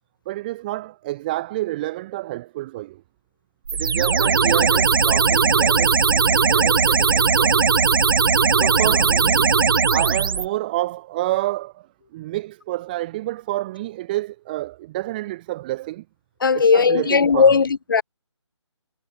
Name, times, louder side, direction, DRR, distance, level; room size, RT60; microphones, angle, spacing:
voice 1, 0.3-3.0 3.7-7.8 8.6-9.5 9.9-11.9 12.1-16.0 16.5-17.6, right 17 dB, 15° right, 2.0 m, -29 dB
sound 1, 3.7-10.5, right 5 dB, 45° right, 1.6 m, -18 dB
voice 2, 16.4-18.0, left 5 dB, 45° left, 1.6 m, -17 dB
figure-of-eight pair, 155°, 16 cm